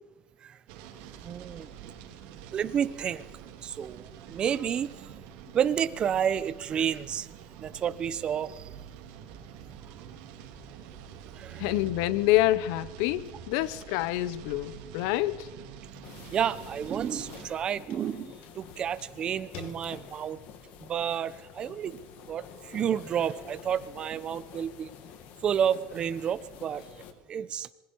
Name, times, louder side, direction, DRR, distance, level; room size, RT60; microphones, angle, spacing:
sound 1, 0.7-17.5, right 8 dB, 70° right, 3.3 m, -46 dB
voice 1, 1.2-1.7 2.5-3.2 3.6-4.9 5.5-7.3 7.6-8.6 11.4-11.8 16.3-20.4 20.8-22.0 22.3-24.9 25.4-26.8 27.3-27.7, right 8 dB, 30° right, 0.9 m, -30 dB
voice 2, 11.6-15.5, left 16 dB, 75° left, 0.8 m, -27 dB
sound 2, 16.0-27.1, left 8 dB, 60° left, 2.4 m, -48 dB
26.5 x 21.0 x 4.7 m
cardioid pair, 150°, 3 cm